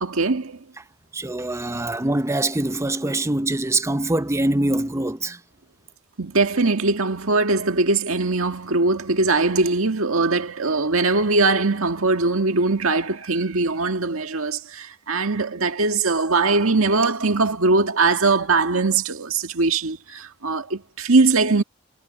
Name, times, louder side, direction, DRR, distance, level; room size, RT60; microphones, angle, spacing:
voice 1, 0.0-0.6 6.2-21.6, right 3 dB, 85° right, 1.8 m, -21 dB
voice 2, 1.1-5.4, right 2 dB, 15° right, 0.6 m, -23 dB
head